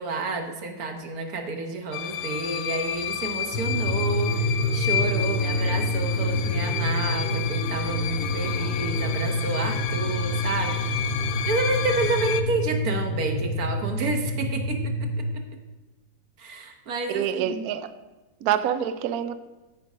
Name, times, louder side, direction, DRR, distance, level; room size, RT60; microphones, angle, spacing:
voice 1, 0.0-11.0 11.4-15.4 16.4-17.7, right 3 dB, 55° right, 5 dB, 1.3 m, -30 dB
sound 1, 1.9-12.4, left 10 dB, 80° left, 1.3 m, -31 dB
sound 2, 3.5-15.2, left 1 dB, 65° left, 1.1 m, -27 dB
voice 2, 17.1-17.9 18.4-19.3, right 10 dB, 70° right, 11 dB, 0.9 m, -26 dB
14.5 x 5.2 x 4.9 m, 1.1 s
omnidirectional pair, 2.1 m